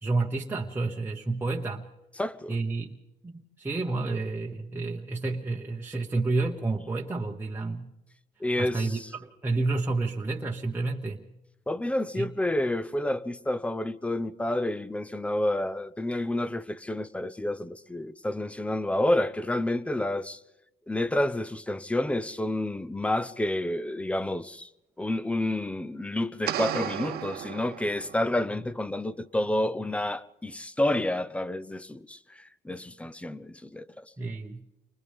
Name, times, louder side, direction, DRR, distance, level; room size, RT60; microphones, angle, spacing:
voice 1, 0.0-1.9 2.5-7.9 8.6-11.3 12.2-12.3 34.2-34.6, right 3 dB, 10° right, 1.1 m, -30 dB
voice 2, 2.2-2.6 8.4-9.1 11.7-20.4 20.9-24.7 25.0-34.1, left 1 dB, 5° left, 0.7 m, -29 dB
sound 1, 26.5-28.4, right 11 dB, 70° right, 1.1 m, -34 dB
30.0 x 24.5 x 3.6 m
cardioid pair, 110°, 17 cm